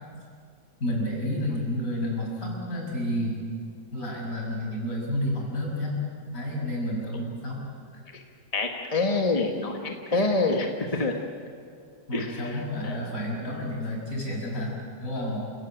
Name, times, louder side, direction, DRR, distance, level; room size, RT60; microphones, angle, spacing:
voice 1, 0.8-3.4 3.9-6.0 6.3-7.6 10.1-10.3 10.9-11.0 12.1-14.7 15.0-15.5, equal, 50° left, -2 dB, 6.9 m, -30 dB
voice 2, 8.5-11.2 12.1-13.2, left 3 dB, 20° left, 2 dB, 1.4 m, -27 dB
29.0 x 17.0 x 9.0 m, 2.2 s
omnidirectional pair, 1.9 m